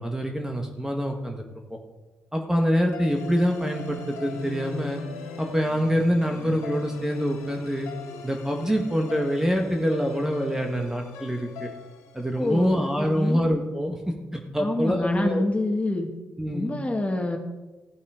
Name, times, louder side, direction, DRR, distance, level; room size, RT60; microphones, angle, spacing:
voice 1, 0.0-1.4 1.7-1.8 2.3-5.0 5.4-7.9 8.2-11.7 12.1-15.4 16.4-16.7, equal, 10° right, 2 dB, 1.8 m, -25 dB
sound 1, 2.9-13.2, left 4 dB, 90° left, 1.6 m, -40 dB
voice 2, 12.4-13.4 14.6-16.1 16.5-17.4, left 2 dB, 25° left, 3 dB, 2.2 m, -26 dB
15.0 x 8.1 x 5.1 m, 1.1 s
supercardioid pair, 55°, 5 cm